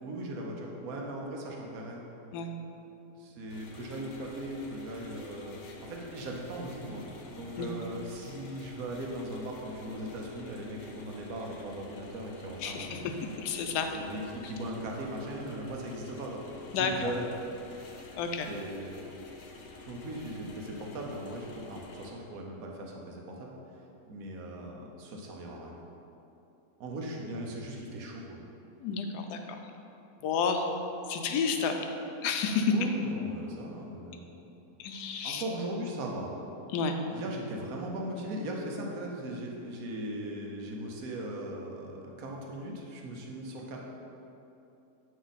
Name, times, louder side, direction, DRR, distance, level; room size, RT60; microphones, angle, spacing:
voice 1, 0.0-2.1 3.2-13.1 13.9-16.4 16.7-17.2 17.7-18.2 18.4-19.1 19.9-23.5 24.1-25.8 26.8-28.4 32.7-34.3 35.2-36.3 37.1-43.8, right 1 dB, 65° right, -1 dB, 1.3 m, -39 dB
sound 1, 3.5-22.1, left 3 dB, 65° left, 1.2 m, -49 dB
voice 2, 12.6-13.9 14.4-14.5 16.7-16.9 18.2-18.5 28.8-29.4 30.2-30.6 31.1-31.8 32.2-32.7 34.8-35.4 36.7-37.0, left 6 dB, 85° left, 5 dB, 1.2 m, -30 dB
8.3 x 5.2 x 4.0 m, 2.9 s
omnidirectional pair, 1.7 m